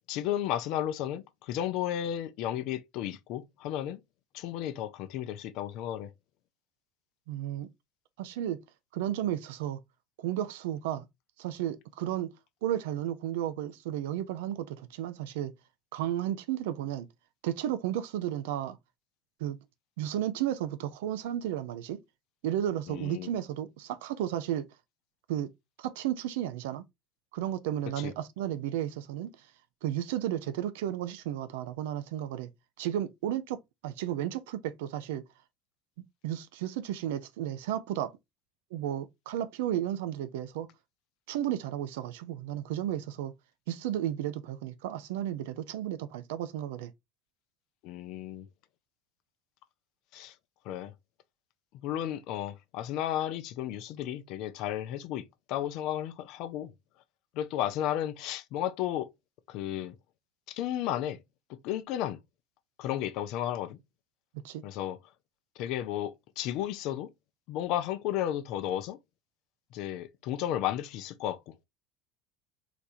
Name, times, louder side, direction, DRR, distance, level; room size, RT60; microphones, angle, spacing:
voice 1, 0.1-4.0 4.3-6.1 22.9-23.3 28.0-28.1 47.8-48.5 50.1-50.3 50.7-50.9 51.8-56.7 57.4-59.1 59.5-59.9 60.5-61.2 61.6-62.2 62.8-63.8 64.6-65.0 65.6-67.1 67.5-69.0 69.7-71.5, left 11 dB, 60° left, 0.5 m, -33 dB
voice 2, 7.3-7.7 8.2-8.6 8.9-9.8 10.2-11.1 11.4-12.3 12.6-15.5 15.9-17.1 17.4-18.8 19.4-19.6 20.0-22.0 22.4-24.7 25.3-25.5 25.8-26.8 27.3-29.3 29.8-32.5 32.8-35.2 36.2-38.1 38.7-40.7 41.3-43.3 43.7-46.9 64.4-64.6, right 11 dB, 70° right, 0.5 m, -33 dB
4.0 x 3.3 x 2.7 m
hypercardioid pair, 70°, 0 cm